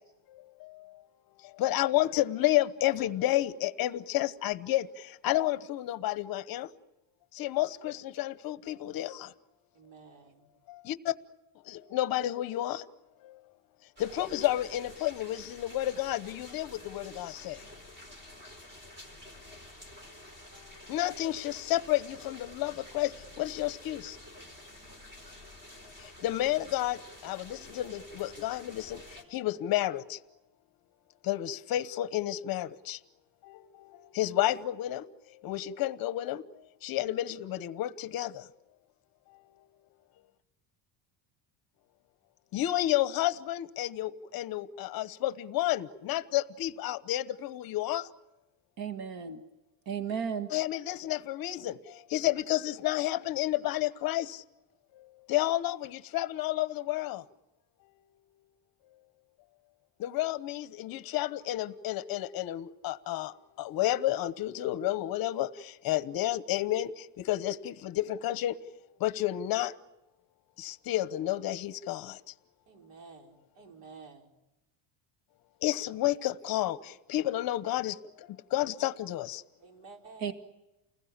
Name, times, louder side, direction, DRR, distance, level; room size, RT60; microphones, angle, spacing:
voice 1, 1.6-6.7 7.3-9.3 10.7-11.1 11.7-12.8 13.2-13.4 14.0-17.6 20.9-23.1 23.4-24.2 26.2-29.0 29.3-30.2 31.2-33.0 33.4-33.9 34.1-35.0 35.4-36.4 36.8-38.4 42.5-48.1 50.5-51.8 52.1-54.4 55.3-57.2 60.0-68.6 69.0-69.7 70.6-72.2 75.6-78.0 78.5-79.4, left 14 dB, 45° left, 13 dB, 1.0 m, -31 dB
voice 2, 9.7-10.5 72.7-74.4 79.6-80.3, right 4 dB, 85° right, 2 dB, 5.4 m, -52 dB
sound 1, 14.0-29.2, left 1 dB, 20° right, 4.4 m, -50 dB
voice 3, 48.8-49.4 49.9-50.5 80.2-80.3, right 7 dB, 45° right, 7 dB, 1.8 m, -34 dB
29.5 x 21.0 x 8.7 m, 0.98 s
cardioid pair, 180°, 50 cm